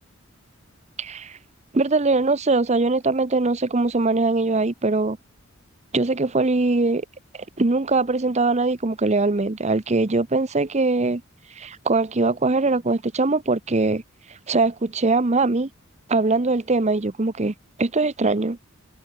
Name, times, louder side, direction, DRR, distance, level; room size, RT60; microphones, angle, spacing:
voice 1, 1.0-1.4 1.7-5.2 5.9-7.0 7.6-11.2 11.6-14.0 14.5-15.7 16.1-18.6, right 3 dB, 30° right, 0.8 m, -21 dB
head